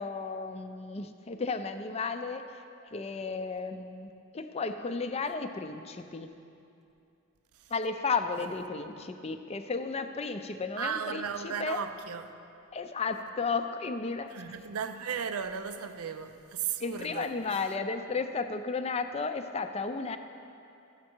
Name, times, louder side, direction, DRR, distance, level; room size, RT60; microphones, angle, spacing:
voice 1, 0.0-2.4 2.9-6.3 7.7-11.8 12.7-14.3 16.8-20.2, left 4 dB, 30° left, 0.4 m, -33 dB
voice 2, 10.8-12.3 14.3-17.6, right 7 dB, 85° right, 0.5 m, -36 dB
13.0 x 7.4 x 4.5 m
head